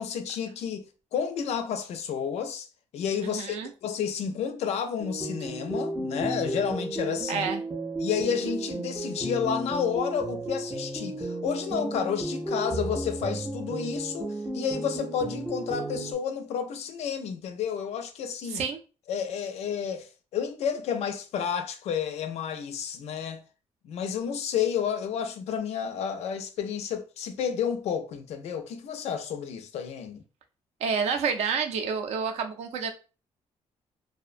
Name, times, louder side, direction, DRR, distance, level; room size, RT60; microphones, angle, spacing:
voice 1, 0.0-2.7 2.9-7.5 8.0-18.6 19.1-23.4 23.8-30.2, left 7 dB, 70° left, 0.4 m, -31 dB
voice 2, 3.2-3.7 7.3-7.6 18.5-18.8 30.8-32.9, right 6 dB, 70° right, 0.4 m, -29 dB
sound 1, 5.0-16.1, right 1 dB, 10° right, 0.4 m, -33 dB
2.6 x 2.1 x 2.4 m
cardioid pair, 175°, 11 cm